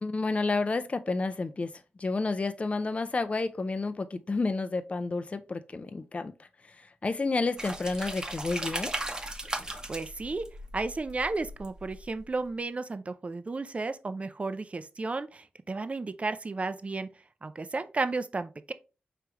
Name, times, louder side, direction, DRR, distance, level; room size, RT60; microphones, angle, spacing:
voice 1, 0.0-1.7 2.0-6.3 6.7-8.9, left 3 dB, 35° left, 0.4 m, -30 dB
sound 1, 7.6-12.2, right 1 dB, 20° right, 0.8 m, -37 dB
voice 2, 9.9-10.5 10.7-17.1 17.4-18.7, right 3 dB, 35° right, 0.5 m, -33 dB
4.8 x 3.4 x 2.9 m
cardioid pair, 65°, 4 cm